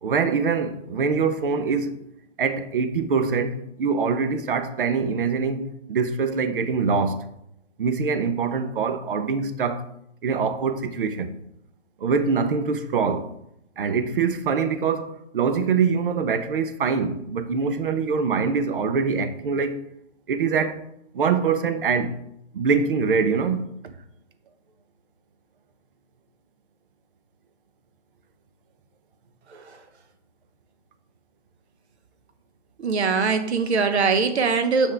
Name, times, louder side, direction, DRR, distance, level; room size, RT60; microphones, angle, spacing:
voice 1, 0.0-2.0 2.4-7.2 7.8-9.9 10.2-11.3 12.0-13.3 13.8-19.8 20.3-20.8 21.1-22.2 22.5-23.9, right 5 dB, 45° right, 0.6 m, -24 dB
voice 2, 29.5-29.8 32.8-34.9, right 5 dB, 60° right, 1.0 m, -22 dB
6.1 x 5.9 x 3.3 m
hypercardioid pair, 165°, 37 cm